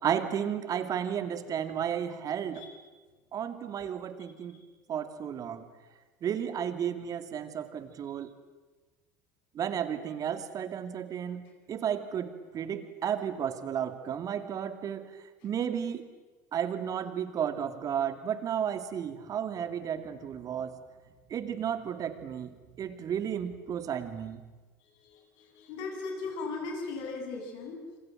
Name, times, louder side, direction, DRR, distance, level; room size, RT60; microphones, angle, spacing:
voice 1, 0.0-2.7 3.3-4.6 4.9-5.7 6.2-8.3 9.5-16.1 16.5-20.8 21.3-24.4, right 8 dB, 45° right, 10 dB, 2.7 m, -33 dB
voice 2, 25.0-27.8, left 3 dB, 65° left, 2 dB, 7.8 m, -38 dB
27.5 x 26.0 x 7.5 m, 1.3 s
hypercardioid pair, 75°, 9 cm